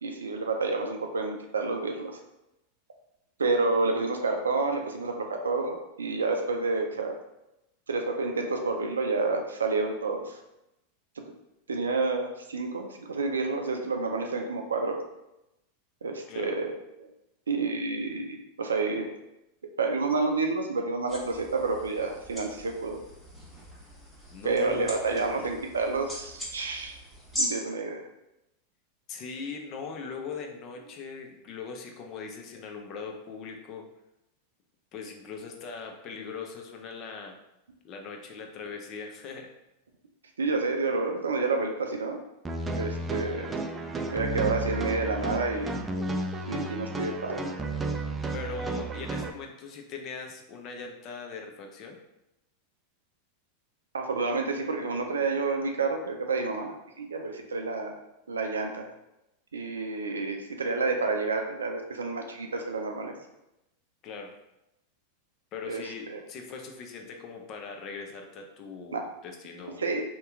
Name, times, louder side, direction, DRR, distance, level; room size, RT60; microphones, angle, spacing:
voice 1, 0.0-2.2 3.4-7.1 7.9-10.4 11.7-15.0 16.0-17.1 17.5-19.1 19.8-23.0 24.4-27.0 27.3-28.0 40.4-42.2 42.8-43.5 44.1-45.7 46.5-47.4 53.9-57.9 58.3-58.9 59.5-63.1 65.7-66.2 68.9-69.0 69.8-70.0, right 3 dB, 85° right, 3 dB, 0.4 m, -29 dB
voice 2, 16.3-16.6 24.3-25.5 29.1-33.9 34.9-37.4 37.8-39.5 48.3-52.0 64.0-64.4 65.5-69.8, left 5 dB, 45° left, 3 dB, 0.6 m, -40 dB
sound 1, 21.1-27.5, right 1 dB, 5° left, 1.2 m, -40 dB
sound 2, 42.4-49.3, right 2 dB, 20° right, 0.3 m, -32 dB
2.8 x 2.2 x 3.5 m, 0.90 s
hypercardioid pair, 95°, 0 cm